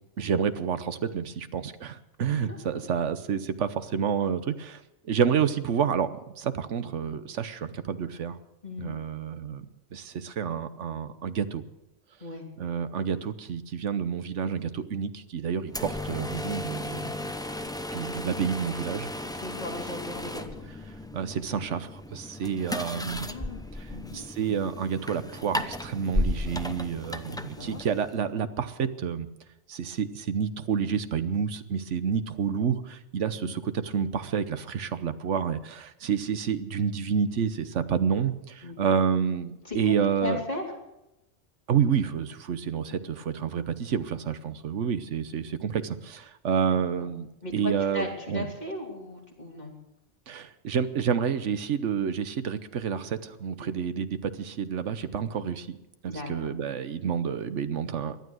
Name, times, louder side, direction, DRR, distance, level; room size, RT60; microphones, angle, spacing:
voice 1, 0.2-4.8 5.1-8.4 8.8-9.7 9.9-11.6 12.6-17.1 17.9-19.1 21.1-23.3 23.8-29.3 29.7-40.4 41.7-48.5 50.3-55.8 56.0-58.2, right 7 dB, 85° right, 12 dB, 1.2 m, -29 dB
voice 2, 2.5-2.8 8.6-9.0 12.2-12.4 19.3-20.6 22.7-23.6 23.9-24.3 27.2-27.8 33.3-33.5 38.6-38.9 39.6-39.9 40.2-40.6 46.7-47.1 47.4-49.7 53.6-53.7 56.0-56.3, left 2 dB, 35° left, 0 dB, 3.4 m, -37 dB
sound 1, 15.7-28.2, left 1 dB, 5° left, 0.6 m, -35 dB
18.5 x 12.0 x 6.3 m, 0.90 s
omnidirectional pair, 1.2 m